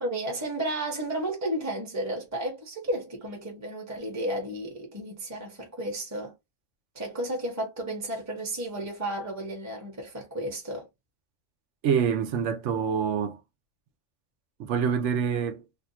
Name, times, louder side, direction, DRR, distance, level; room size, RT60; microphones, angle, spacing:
voice 1, 0.0-6.3 6.9-10.9, right 1 dB, 15° right, 0.9 m, -33 dB
voice 2, 11.8-13.4 14.6-15.6, right 7 dB, 70° right, 1.0 m, -26 dB
2.8 x 2.3 x 4.1 m
omnidirectional pair, 1.3 m